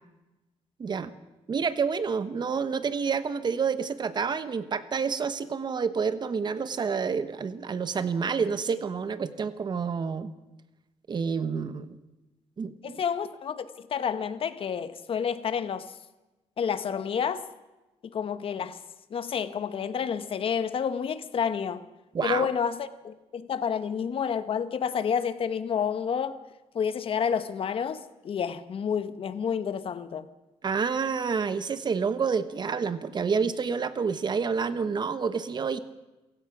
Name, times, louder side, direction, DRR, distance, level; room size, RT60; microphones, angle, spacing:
voice 1, 0.8-1.1 1.5-10.3 11.1-12.0 12.6-12.9 22.1-22.5 30.6-35.8, right 5 dB, 40° right, 1.2 m, -28 dB
voice 2, 12.8-15.9 16.6-17.5 18.0-18.8 19.1-21.8 22.2-26.4 26.7-30.3, left 7 dB, 50° left, 1.1 m, -29 dB
27.5 x 16.5 x 6.1 m
cardioid pair, 115°, 12 cm